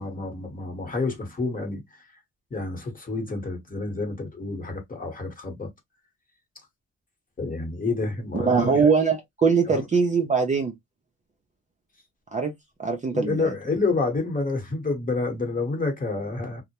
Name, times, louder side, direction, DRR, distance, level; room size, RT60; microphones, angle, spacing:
voice 1, 0.0-2.0 2.5-5.7 7.4-8.8 9.7-9.8 13.1-16.6, left 3 dB, 30° left, 1.1 m, -29 dB
voice 2, 8.3-10.7 12.3-12.5 12.8-13.5, right 5 dB, 25° right, 0.5 m, -22 dB
2.1 x 2.1 x 2.8 m
cardioid pair, 90°, 30 cm